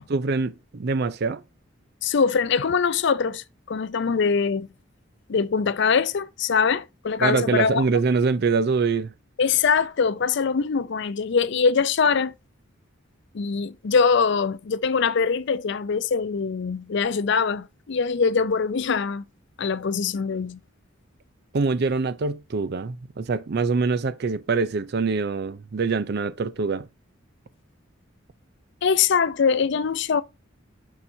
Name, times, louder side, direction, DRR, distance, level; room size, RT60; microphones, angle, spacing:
voice 1, 0.1-1.4 7.2-9.1 21.5-26.9, right 4 dB, 55° right, 0.5 m, -24 dB
voice 2, 2.0-4.7 5.3-7.8 9.4-12.3 13.3-19.2 19.6-20.6 28.8-30.2, left 5 dB, 60° left, 0.5 m, -23 dB
6.9 x 5.7 x 2.7 m
head